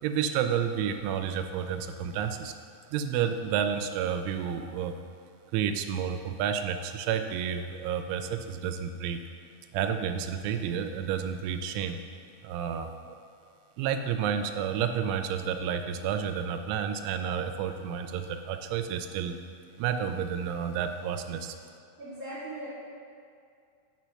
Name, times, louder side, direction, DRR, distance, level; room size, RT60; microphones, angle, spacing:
voice 1, 0.0-2.5 2.9-4.9 5.5-9.2 9.7-12.0 12.4-13.2 13.8-19.4 19.8-21.6, right 8 dB, 90° right, 7 dB, 3.0 m, -30 dB
voice 2, 22.0-22.7, right 1 dB, 65° right, -9 dB, 2.7 m, -39 dB
8.9 x 4.5 x 6.2 m, 2.4 s
omnidirectional pair, 5.4 m